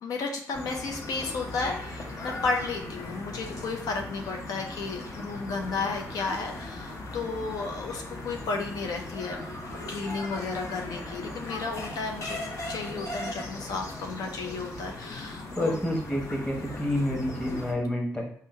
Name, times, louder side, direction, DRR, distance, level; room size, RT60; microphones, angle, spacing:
voice 1, 0.0-9.4 9.9-12.4 12.7-15.7, left 4 dB, 85° left, 2 dB, 0.5 m, -33 dB
sound 1, 0.5-17.7, left 2 dB, 60° left, 0.8 m, -38 dB
voice 2, 15.6-18.3, left 1 dB, 15° left, -1 dB, 1.1 m, -28 dB
3.7 x 2.2 x 4.1 m, 0.65 s
cardioid pair, 70°, 6 cm